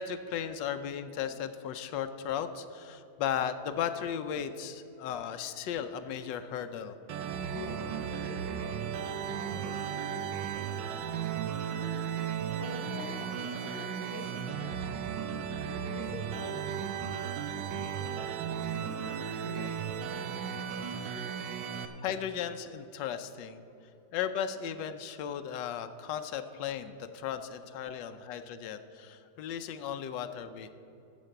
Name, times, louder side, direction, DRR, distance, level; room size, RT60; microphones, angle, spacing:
voice 1, 0.0-7.0 22.0-23.6 24.1-30.7, left 8 dB, 90° left, 9 dB, 1.3 m, -36 dB
sound 1, 7.1-21.9, right 8 dB, 85° right, 1.4 m, -35 dB
voice 2, 7.5-11.9 12.3-15.3 15.9-18.3 18.6-20.4, left 3 dB, 55° left, -1 dB, 1.3 m, -48 dB
14.0 x 5.3 x 7.7 m, 2.9 s
omnidirectional pair, 1.9 m